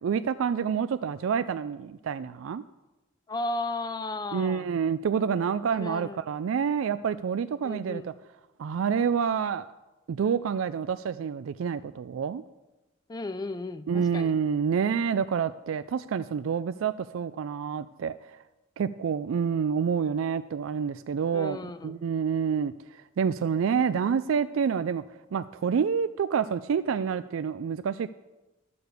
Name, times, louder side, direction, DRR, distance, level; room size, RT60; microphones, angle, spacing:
voice 1, 0.0-2.6 4.3-8.1 8.6-9.6 10.1-12.4 13.9-18.4 18.8-25.0 25.3-28.1, right 7 dB, 80° right, 12 dB, 0.3 m, -28 dB
voice 2, 3.3-4.7 5.6-6.2 7.6-8.1 13.1-14.3 21.3-21.9, left 2 dB, 20° left, 11 dB, 0.4 m, -34 dB
12.5 x 6.9 x 6.6 m, 1.1 s
head